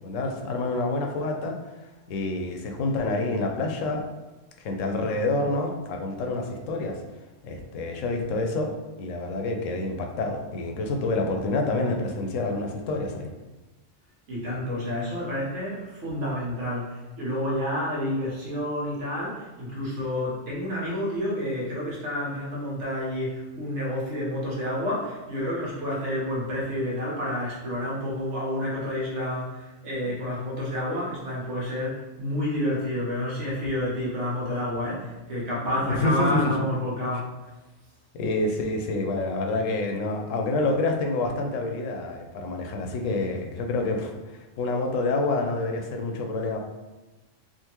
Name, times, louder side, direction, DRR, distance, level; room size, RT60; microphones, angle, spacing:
voice 1, 0.0-1.6 2.1-4.1 4.6-7.0 7.4-8.7 9.0-13.3 35.8-36.6 38.1-46.6, left 2 dB, 90° left, 3 dB, 1.0 m, -27 dB
voice 2, 14.3-37.3, left 1 dB, 70° right, -5 dB, 1.3 m, -29 dB
3.6 x 2.5 x 2.9 m, 1.1 s
omnidirectional pair, 1.3 m